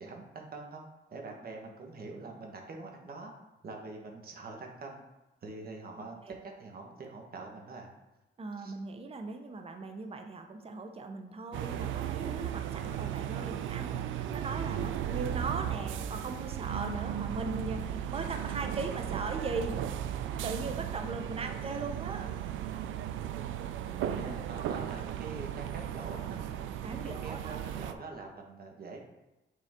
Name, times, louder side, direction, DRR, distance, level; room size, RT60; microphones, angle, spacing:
voice 1, 0.0-3.3 3.6-5.0 5.4-7.9 8.6-8.7 21.3-21.4 24.2-26.5 26.9-29.0, right 3 dB, 50° right, 1 dB, 1.3 m, -44 dB
voice 2, 8.4-19.8 20.3-22.3 24.0-24.2 24.6-24.7 26.8-27.6, right 3 dB, 30° right, 5 dB, 0.7 m, -39 dB
sound 1, 11.5-27.9, right 10 dB, 80° right, 0.4 m, -36 dB
6.4 x 4.0 x 3.6 m, 1.0 s
cardioid pair, 90°, 20 cm